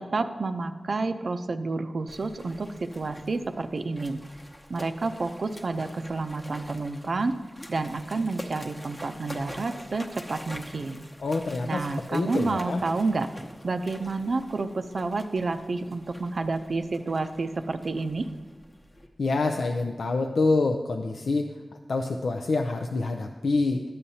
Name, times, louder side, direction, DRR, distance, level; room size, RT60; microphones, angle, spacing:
voice 1, 0.0-4.2 4.7-7.3 7.7-11.0 11.6-13.3 13.6-18.3, right 3 dB, 65° right, 8 dB, 0.5 m, -29 dB
sound 1, 2.1-19.1, left 1 dB, 25° left, 0.9 m, -46 dB
voice 2, 11.2-12.8 19.2-21.5 21.9-23.8, left 3 dB, 90° left, 4 dB, 0.4 m, -26 dB
12.5 x 8.6 x 2.7 m, 1.4 s
wide cardioid pair, 70°, 0 cm